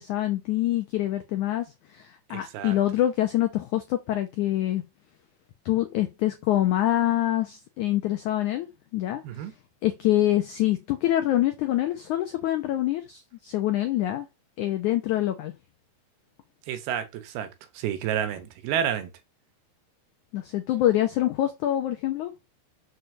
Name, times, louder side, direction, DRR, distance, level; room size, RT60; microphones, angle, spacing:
voice 1, 0.0-4.8 5.6-9.2 9.8-14.3 14.6-15.5 20.3-22.3, left 13 dB, 85° left, 1.7 m, -25 dB
voice 2, 2.3-2.8 9.2-9.5 16.7-17.5 17.7-19.1, right 9 dB, 75° right, 2.8 m, -30 dB
6.6 x 4.6 x 6.5 m
omnidirectional pair, 4.7 m